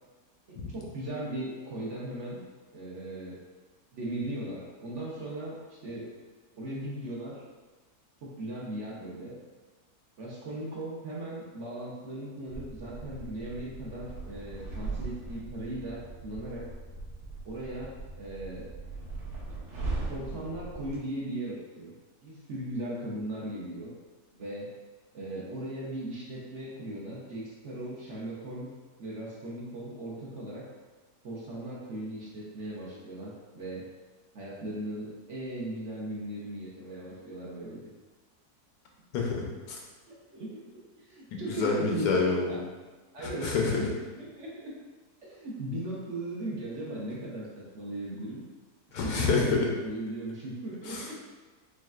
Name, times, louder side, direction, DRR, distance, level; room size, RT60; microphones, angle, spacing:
voice 1, 0.5-2.4 2.7-3.4 3.9-6.1 6.6-7.4 8.2-9.4 10.2-16.7 17.4-18.7 20.1-21.9 22.2-23.9 24.3-24.7 25.1-28.7 29.0-30.6 31.2-33.9 34.3-37.9 40.0-40.6 41.0-42.6 43.1-44.8 45.2-48.4 49.0-51.1, right 1 dB, 55° right, -5 dB, 1.0 m, -38 dB
sound 1, 12.5-21.0, right 3 dB, 75° right, 1.5 m, -39 dB
voice 2, 39.1-39.8 41.3-42.5 43.2-43.8 48.9-49.7 50.8-51.1, left 4 dB, 85° left, -1 dB, 1.3 m, -28 dB
6.3 x 2.3 x 2.4 m, 1.3 s
omnidirectional pair, 1.7 m